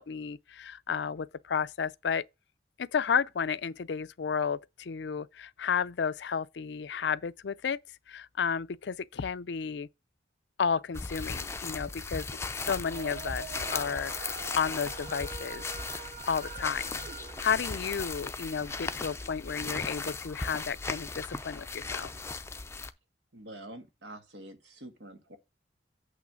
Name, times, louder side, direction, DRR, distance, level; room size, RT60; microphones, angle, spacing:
voice 1, 0.0-2.2 2.8-7.8 8.1-9.9 10.6-15.6 16.3-17.0 17.4-22.1, left 6 dB, 70° left, 0.5 m, -32 dB
sound 1, 10.9-22.9, left 4 dB, 15° left, 0.5 m, -37 dB
sound 2, 12.9-19.0, right 7 dB, 45° right, 0.5 m, -45 dB
voice 2, 23.3-25.4, right 1 dB, 75° right, 1.6 m, -46 dB
8.5 x 3.2 x 6.1 m
head